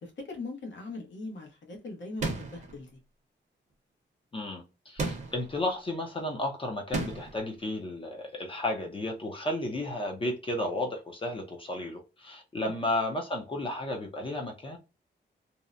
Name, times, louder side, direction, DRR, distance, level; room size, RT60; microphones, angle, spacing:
voice 1, 0.0-2.9 12.6-12.8, left 3 dB, 75° left, 1.0 m, -40 dB
sound 1, 2.2-2.7 5.0-5.5 6.9-7.4, right 3 dB, 40° right, 0.7 m, -33 dB
voice 2, 4.3-14.8, left 1 dB, 30° left, 0.5 m, -33 dB
2.7 x 2.0 x 2.3 m
wide cardioid pair, 175°, 19 cm